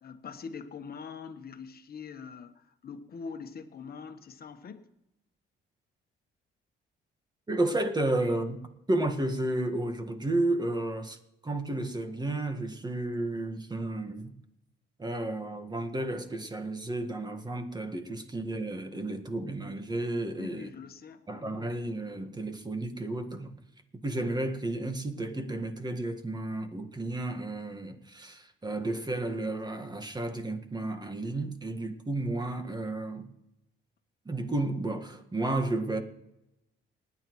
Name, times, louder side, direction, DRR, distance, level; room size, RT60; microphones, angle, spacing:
voice 1, 0.0-4.9 8.0-8.4 20.4-21.7, left 5 dB, 50° left, 1.2 m, -43 dB
voice 2, 7.5-8.6 8.9-11.2 11.4-14.3 15.0-20.7 21.3-23.5 24.0-33.3 34.2-36.0, right 2 dB, 20° right, 1.6 m, -32 dB
29.0 x 9.7 x 3.1 m
cardioid pair, 90°, 20 cm